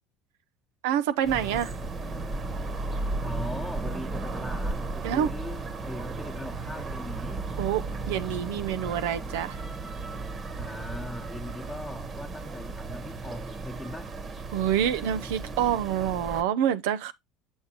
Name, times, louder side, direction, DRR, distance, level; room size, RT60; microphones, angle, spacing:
voice 1, 0.8-1.8 5.0-5.3 7.6-7.8 8.1-9.6 14.5-17.1, right 10 dB, 85° right, 0.6 m, -27 dB
sound 1, 1.2-16.4, right 3 dB, 35° right, 1.3 m, -35 dB
voice 2, 3.2-7.5 10.6-14.1, left 1 dB, 10° left, 1.1 m, -40 dB
7.2 x 6.5 x 2.9 m
supercardioid pair, 110°, 0 cm